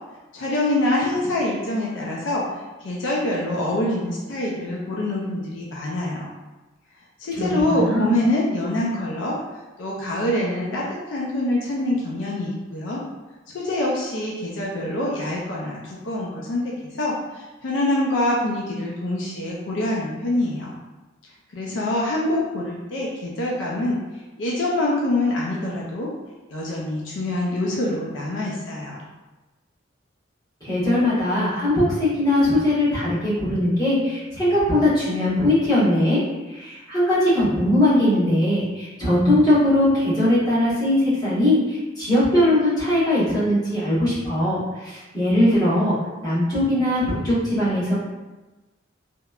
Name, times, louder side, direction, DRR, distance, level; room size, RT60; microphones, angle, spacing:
voice 1, 0.3-6.3 7.2-9.4 9.8-13.0 13.5-20.7 21.5-24.0 24.4-26.1 26.5-29.0, left 1 dB, 70° left, -4 dB, 0.4 m, -25 dB
voice 2, 7.4-8.2 30.6-36.2 36.5-46.0 46.2-47.9, left 1 dB, 20° left, -11 dB, 1.1 m, -20 dB
2.9 x 2.1 x 2.3 m, 1.1 s
head